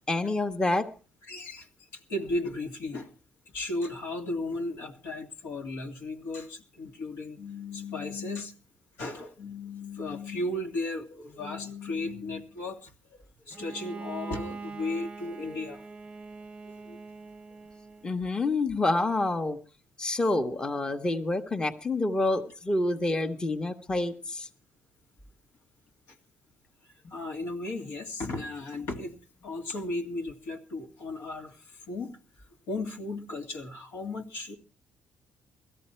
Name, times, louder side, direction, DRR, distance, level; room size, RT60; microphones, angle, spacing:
voice 1, 0.1-0.9 18.0-19.6 20.0-24.5, left 2 dB, 20° left, 6 dB, 1.0 m, -27 dB
voice 2, 1.3-3.1 3.5-8.5 9.0-12.9 13.5-15.8 16.6-17.0 27.1-29.2 29.4-32.1 32.7-34.6, left 2 dB, 85° left, 1 dB, 2.0 m, -35 dB
Bowed string instrument, 13.5-18.2, right 4 dB, 20° right, 0.7 m, -43 dB
17.0 x 13.5 x 4.4 m, 0.37 s
cardioid pair, 110°, 4 cm